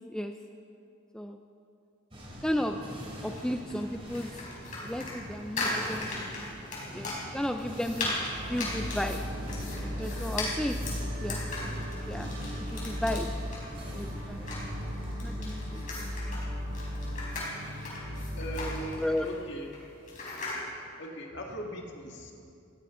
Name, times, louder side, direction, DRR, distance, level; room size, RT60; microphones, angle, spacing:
sound 1, 2.1-15.1, equal, 25° right, 3.0 m, -43 dB
voice 1, 2.4-2.8 3.2-4.4 4.8-6.5 6.9-8.2 8.5-9.2 10.0-10.8 11.0-11.5 11.9-12.4 12.7-13.3 13.9-14.5 15.2-15.8 19.0-19.3, equal, 5° left, 5 dB, 0.4 m, -34 dB
sound 2, 3.1-20.6, left 2 dB, 40° left, 4.6 m, -38 dB
sound 3, 8.3-18.8, equal, 65° right, 3.9 m, -37 dB
voice 2, 18.4-19.7 21.0-22.3, right 1 dB, 55° left, 0 dB, 2.1 m, -39 dB
20.0 x 16.0 x 3.8 m, 2.5 s
head